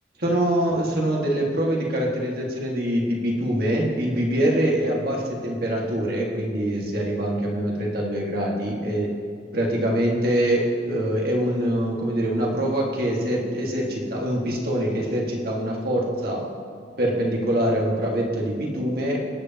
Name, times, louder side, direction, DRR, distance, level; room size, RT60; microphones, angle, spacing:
voice 1, 0.2-9.1 9.5-16.5 17.0-19.2, right 1 dB, 55° right, -2 dB, 1.9 m, -24 dB
19.5 x 8.2 x 2.9 m, 2.2 s
head